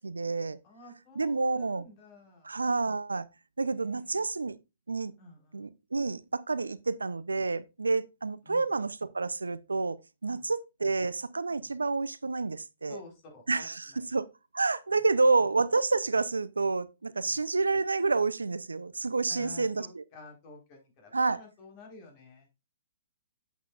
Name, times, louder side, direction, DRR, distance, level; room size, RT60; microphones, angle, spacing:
voice 1, 0.0-0.6 1.2-1.9 2.4-3.3 3.6-4.6 4.9-5.1 5.5-10.0 10.2-13.0 13.5-14.3 14.5-20.0 21.1-21.4, right 3 dB, 90° right, 0.6 m, -29 dB
voice 2, 0.6-2.6 3.7-4.3 5.2-5.6 8.4-8.6 10.2-10.5 11.6-11.8 12.9-13.7 13.9-14.1 17.2-17.4 19.3-22.5, left 3 dB, 35° left, 4.5 m, -51 dB
8.3 x 8.2 x 2.5 m
hypercardioid pair, 125°, 0 cm